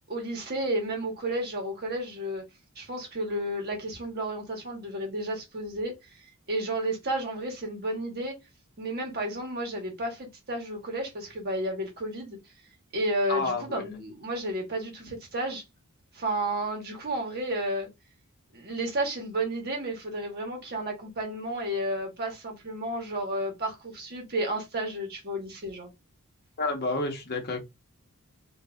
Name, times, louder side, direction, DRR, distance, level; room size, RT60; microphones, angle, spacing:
voice 1, 0.1-2.4 2.7-6.2 6.5-8.3 8.8-12.4 12.9-15.6 16.1-17.9 18.5-25.9, right 1 dB, 45° right, 1.2 m, -32 dB
voice 2, 13.3-13.8 26.6-27.6, left 3 dB, 45° left, 1.0 m, -29 dB
3.9 x 2.6 x 2.3 m
head